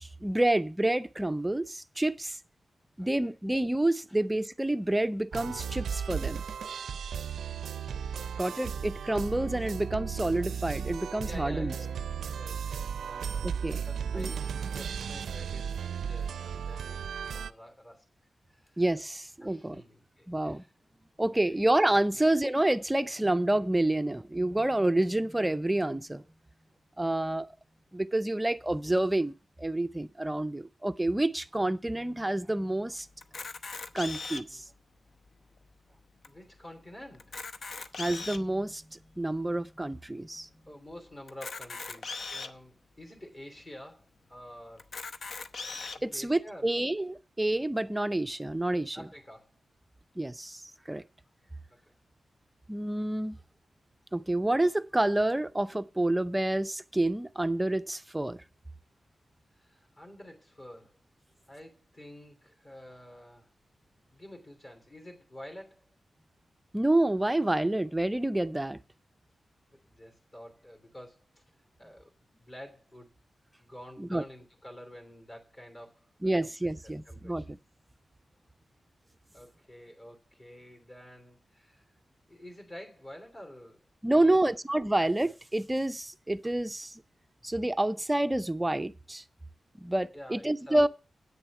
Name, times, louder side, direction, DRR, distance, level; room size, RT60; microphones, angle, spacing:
voice 1, 0.0-2.4 3.0-6.4 8.4-11.7 13.4-13.8 14.1-14.3 18.8-19.8 20.3-20.6 21.2-26.2 27.0-27.5 27.9-33.1 33.9-34.6 38.0-40.5 46.0-49.0 50.2-50.6 50.9-51.0 52.7-53.4 54.1-58.4 66.7-68.8 74.0-74.2 76.2-77.6 84.0-87.0 87.4-89.2 89.8-90.9, right 1 dB, 10° right, 0.5 m, -28 dB
voice 2, 3.0-3.4 8.2-8.7 11.2-12.1 12.3-18.1 18.5-18.8 19.4-20.7 21.4-21.6 22.1-22.2 34.5-34.6 36.2-37.4 40.7-44.9 46.0-46.7 48.9-49.5 51.9-52.0 59.6-60.9 61.5-63.5 64.1-65.9 69.8-71.4 71.8-72.1 72.4-73.1 73.6-76.1 76.4-77.5 79.3-81.8 82.3-83.8 84.1-84.6 85.0-85.1 90.1-90.9, left 1 dB, 30° left, 2.9 m, -49 dB
sound 1, 5.3-17.5, right 7 dB, 90° right, 0.5 m, -35 dB
Camera, 33.2-34.6 35.3-35.4 35.6-35.7 36.2-36.3 37.1-38.5 39.2-39.3 41.3-42.5 43.2-43.3 43.6-43.7 44.8-46.0, left 4 dB, 55° left, 0.8 m, -39 dB
8.9 x 6.7 x 8.4 m
wide cardioid pair, 115°, 0 cm